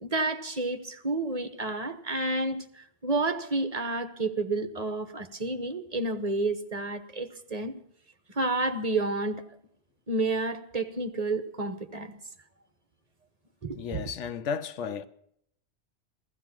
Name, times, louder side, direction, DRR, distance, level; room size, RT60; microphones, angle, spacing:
voice 1, 0.0-7.7 8.3-9.4 10.1-12.2 13.6-14.0, right 2 dB, 35° right, 1.1 m, -30 dB
voice 2, 13.7-15.1, left 6 dB, 85° left, 1.1 m, -33 dB
16.0 x 14.0 x 6.0 m
omnidirectional pair, 1.2 m